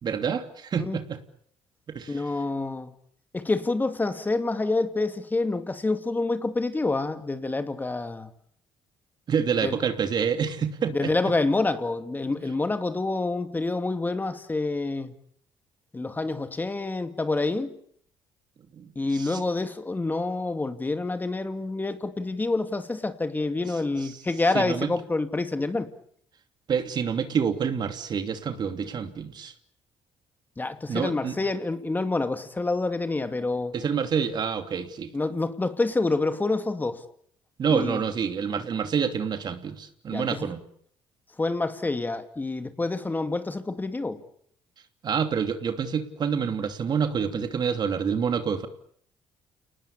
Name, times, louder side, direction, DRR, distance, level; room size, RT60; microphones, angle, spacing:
voice 1, 0.0-1.2 1.9-2.2 9.3-11.1 18.7-19.4 24.5-24.9 26.7-29.5 30.9-31.4 33.7-35.1 37.6-40.6 45.0-48.7, right 7 dB, 50° right, 2.8 m, -27 dB
voice 2, 2.1-2.9 3.3-8.3 9.6-9.8 10.9-15.1 15.9-17.8 19.0-25.9 30.6-33.7 35.1-37.0 37.7-38.0 40.1-40.5 41.4-44.2, left 3 dB, 20° left, 2.4 m, -27 dB
29.0 x 19.5 x 8.6 m
cardioid pair, 85°, 9 cm